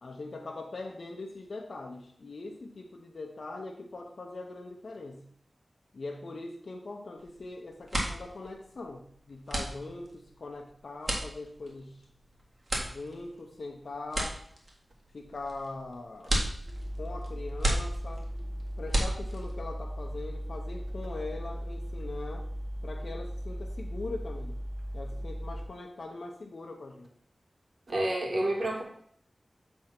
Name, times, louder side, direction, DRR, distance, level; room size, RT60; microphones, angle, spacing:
voice 1, 0.0-5.3 5.9-12.1 12.8-14.4 15.1-16.4 17.0-18.3 18.8-22.5 22.8-24.5 24.9-27.1, left 2 dB, 75° left, 1 dB, 0.7 m, -41 dB
sound 1, 7.2-7.5 7.7-19.7, right 1 dB, 45° right, 1.7 m, -34 dB
sound 2, 16.6-25.7, equal, 15° right, 2.0 m, -37 dB
voice 2, 27.9-28.8, right 1 dB, 70° right, 1 dB, 1.7 m, -29 dB
7.7 x 3.5 x 5.8 m, 0.63 s
wide cardioid pair, 65°, 0 cm